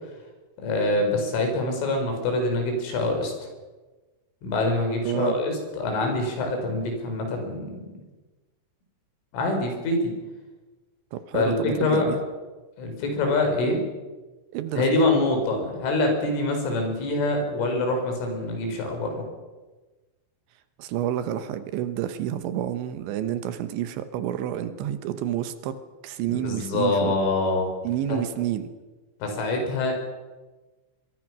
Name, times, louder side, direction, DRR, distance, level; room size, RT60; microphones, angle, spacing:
voice 1, 0.6-3.3 4.4-7.7 9.3-10.1 11.3-11.5 11.8-12.1 12.8-13.8 14.8-19.2 26.3-27.7 28.1-28.2 29.2-29.9, left 2 dB, 80° left, 4 dB, 7.1 m, -25 dB
voice 2, 11.1-12.2 14.5-15.0 20.8-25.8 26.0-27.2 27.8-28.7, right 11 dB, 75° right, 10 dB, 3.2 m, -29 dB
24.0 x 22.5 x 6.1 m, 1.2 s
omnidirectional pair, 5.6 m